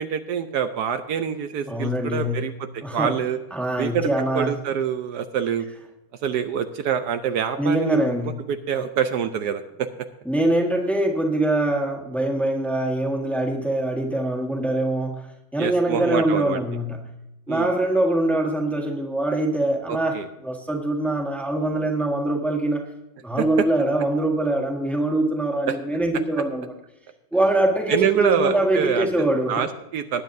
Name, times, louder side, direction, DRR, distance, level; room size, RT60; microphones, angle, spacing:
voice 1, 0.0-3.4 3.8-5.6 6.2-8.0 8.2-9.9 15.6-16.6 17.5-17.7 19.9-20.3 23.4-23.7 25.7-25.8 26.4-26.5 27.9-30.2, right 8 dB, 75° right, 8 dB, 1.2 m, -26 dB
voice 2, 1.7-2.4 2.8-3.1 3.5-4.5 7.6-8.4 10.2-17.0 17.5-22.8 23.2-26.7 27.3-29.6, right 1 dB, ahead, 1 dB, 1.4 m, -23 dB
19.5 x 9.3 x 2.7 m, 0.92 s
omnidirectional pair, 1.8 m